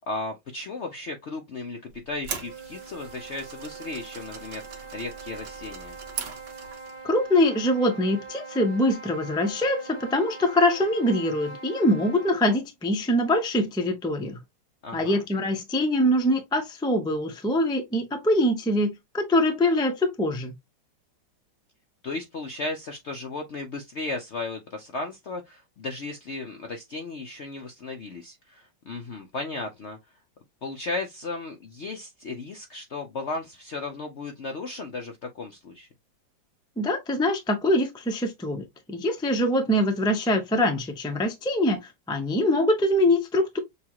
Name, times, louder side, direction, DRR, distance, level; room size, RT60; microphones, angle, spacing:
voice 1, 0.1-5.9 14.8-15.2 22.0-30.0 30.6-35.9, left 3 dB, 65° left, 0.7 m, -35 dB
sound 1, 1.9-7.0, right 6 dB, 75° right, 1.7 m, -40 dB
sound 2, 2.2-12.5, right 4 dB, 30° right, 1.5 m, -43 dB
voice 2, 7.0-14.4 14.9-20.5 36.8-41.8 42.1-43.6, left 1 dB, 5° left, 0.3 m, -24 dB
6.8 x 2.4 x 2.9 m
omnidirectional pair, 2.0 m